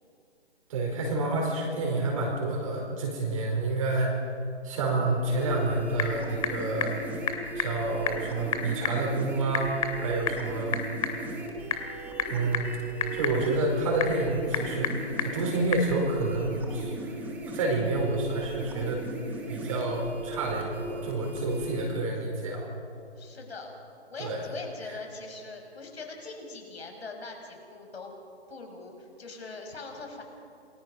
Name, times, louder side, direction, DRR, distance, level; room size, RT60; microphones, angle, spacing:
voice 1, 0.7-4.2 4.6-6.9 7.5-10.8 12.3-12.7 13.1-17.3 17.5-19.0 19.5-22.7 24.2-24.4, right 2 dB, 30° right, -1 dB, 4.8 m, -29 dB
sound 1, 5.2-21.9, right 2 dB, 5° right, 1.4 m, -38 dB
Typing / Telephone, 5.4-15.9, left 6 dB, 30° left, 2.2 m, -34 dB
voice 2, 23.2-23.7 24.1-28.1 28.5-30.2, left 3 dB, 65° left, 2 dB, 6.4 m, -42 dB
28.0 x 22.5 x 5.5 m, 2.5 s
hypercardioid pair, 160°, 33 cm